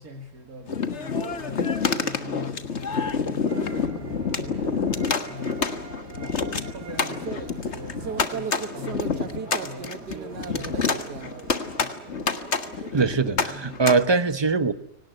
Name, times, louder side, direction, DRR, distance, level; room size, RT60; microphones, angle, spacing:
voice 1, 0.0-5.6 6.2-11.9, left 1 dB, 60° right, 4 dB, 2.8 m, -42 dB
sound 1, 0.7-13.9, left 5 dB, 45° left, 1.8 m, -28 dB
sound 2, 3.5-12.9, right 6 dB, 80° right, 2.0 m, -39 dB
voice 2, 12.9-14.7, right 4 dB, 20° right, 12 dB, 0.8 m, -22 dB
24.0 x 19.0 x 9.3 m, 0.79 s
omnidirectional pair, 1.7 m